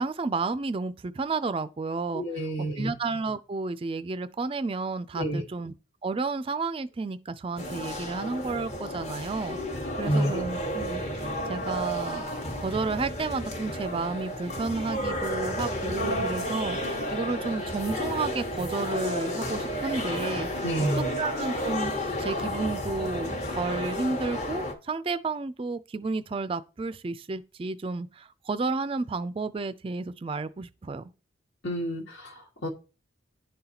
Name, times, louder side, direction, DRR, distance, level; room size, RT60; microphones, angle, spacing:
voice 1, 0.0-2.2 2.8-5.7 6.0-11.0 11.5-20.9 21.2-31.0, right 3 dB, 25° right, 0.3 m, -32 dB
voice 2, 2.1-2.9 5.1-5.4 10.0-10.4 20.6-21.1 31.6-32.7, equal, 75° left, 1.6 m, -29 dB
sound 1, 7.6-24.7, equal, 35° left, 1.1 m, -32 dB
10.5 x 4.0 x 2.9 m
head